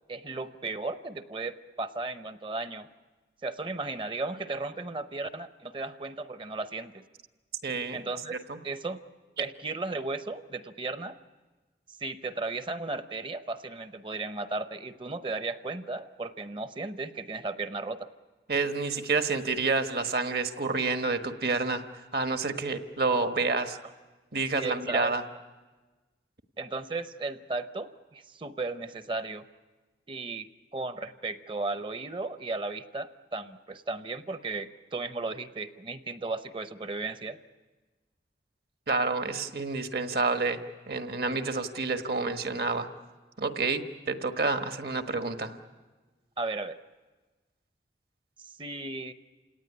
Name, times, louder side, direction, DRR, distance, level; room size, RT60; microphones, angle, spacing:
voice 1, 0.1-2.9 3.4-7.0 7.9-8.3 8.6-9.0 9.4-11.2 11.9-18.1 24.5-25.2 26.6-29.5 30.1-37.4 46.4-46.8 48.4-49.1, right 3 dB, 30° right, 11 dB, 0.7 m, -35 dB
voice 2, 7.6-8.1 8.5-8.6 18.5-21.8 22.1-23.8 24.3-25.2 38.9-40.6 40.9-42.9 43.4-45.5, right 3 dB, 60° right, 7 dB, 1.4 m, -29 dB
28.5 x 18.0 x 9.9 m, 1.3 s
head